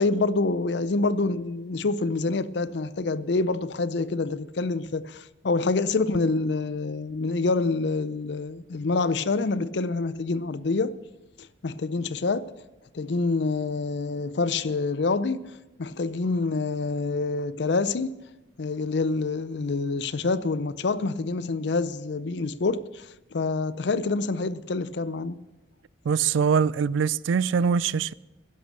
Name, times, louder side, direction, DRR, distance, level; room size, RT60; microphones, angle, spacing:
voice 1, 0.0-10.9 11.4-12.5 12.9-15.4 15.8-18.1 18.6-25.4, left 3 dB, 65° left, 0.5 m, -27 dB
voice 2, 26.1-28.1, right 6 dB, 80° right, 0.3 m, -23 dB
12.0 x 10.5 x 6.7 m
head